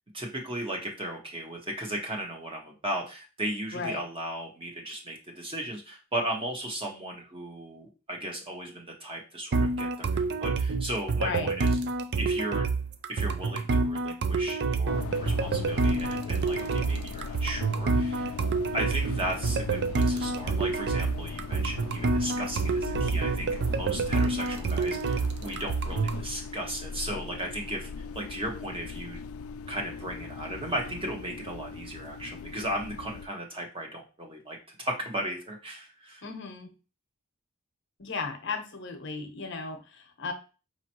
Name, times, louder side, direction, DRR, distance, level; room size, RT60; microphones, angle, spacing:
voice 1, 0.1-11.8 12.2-12.7 13.1-18.4 18.7-27.9 28.1-29.2 29.7-36.2, right 1 dB, 25° right, 1 dB, 1.1 m, -36 dB
sound 1, 9.5-26.2, right 4 dB, 55° right, 0.4 m, -28 dB
voice 2, 11.1-11.5 36.2-36.7 38.0-40.3, left 4 dB, 60° left, 6 dB, 0.8 m, -35 dB
sound 2, 14.9-33.3, left 5 dB, 80° left, 0.3 m, -39 dB
5.3 x 3.0 x 2.9 m, 0.33 s
head